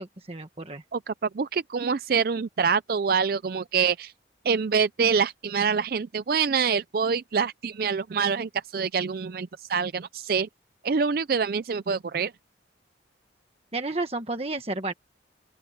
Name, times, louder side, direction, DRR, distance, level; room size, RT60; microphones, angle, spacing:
voice 1, 0.0-0.8 13.7-14.9, right 2 dB, 35° right, 1.5 m, -31 dB
voice 2, 0.9-4.1 4.4-10.5 10.8-12.3, right 6 dB, 55° right, 0.4 m, -26 dB
open air
head